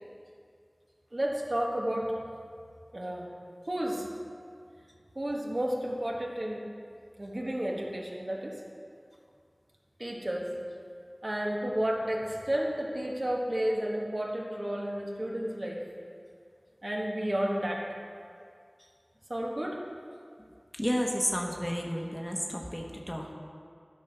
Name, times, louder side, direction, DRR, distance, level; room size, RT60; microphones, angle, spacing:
voice 1, 1.1-2.1 2.9-3.3 3.7-4.1 5.1-6.6 7.2-8.6 10.0-10.5 11.2-15.8 16.8-17.8 19.3-19.8, right 1 dB, 55° right, -2 dB, 1.5 m, -31 dB
voice 2, 20.8-23.3, equal, 10° left, 0 dB, 1.3 m, -31 dB
13.0 x 5.5 x 5.9 m, 2.2 s
wide cardioid pair, 40°, 0 cm